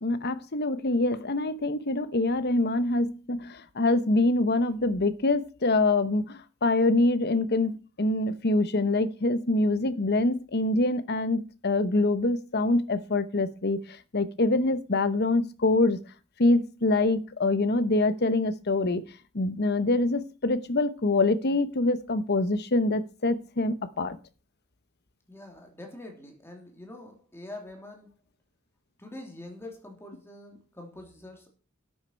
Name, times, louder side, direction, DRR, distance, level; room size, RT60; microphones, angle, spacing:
voice 1, 0.0-16.0 16.4-19.0 19.3-24.2, left 2 dB, 50° left, 12 dB, 0.9 m, -25 dB
voice 2, 25.3-28.1 29.0-31.5, left 1 dB, 10° left, 1 dB, 3.1 m, -44 dB
12.5 x 9.4 x 4.6 m, 0.35 s
head